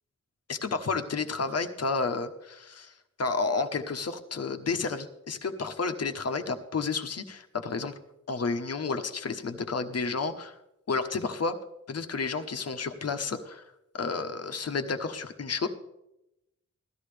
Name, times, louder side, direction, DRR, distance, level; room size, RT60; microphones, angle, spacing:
voice 1, 0.5-8.0 8.3-10.6 10.9-11.6 11.9-15.7, left 4 dB, 55° left, 8 dB, 1.1 m, -31 dB
16.5 x 13.5 x 3.4 m, 0.86 s
wide cardioid pair, 100°, 30 cm